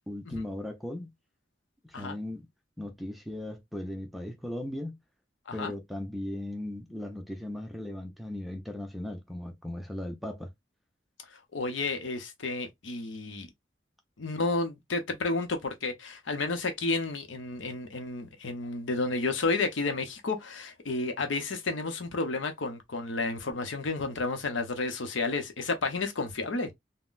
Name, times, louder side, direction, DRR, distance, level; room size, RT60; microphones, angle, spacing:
voice 1, 0.1-1.1 1.8-2.5 2.8-5.0 5.5-10.5, left 1 dB, ahead, 0.5 m, -37 dB
voice 2, 11.5-13.5 14.2-26.7, left 3 dB, 80° left, 0.7 m, -31 dB
3.7 x 2.1 x 2.4 m
head